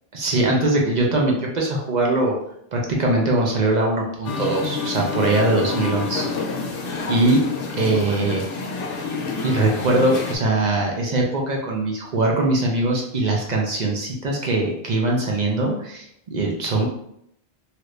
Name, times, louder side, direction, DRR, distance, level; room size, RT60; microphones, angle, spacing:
voice 1, 0.1-2.4 2.7-6.5 7.0-7.5 7.7-8.4 9.4-16.9, right 2 dB, 50° right, -1 dB, 0.7 m, -21 dB
Musical instrument, 4.2-10.4, left 4 dB, 65° left, 0.7 m, -28 dB
2.9 x 2.5 x 3.2 m, 0.73 s
omnidirectional pair, 1.0 m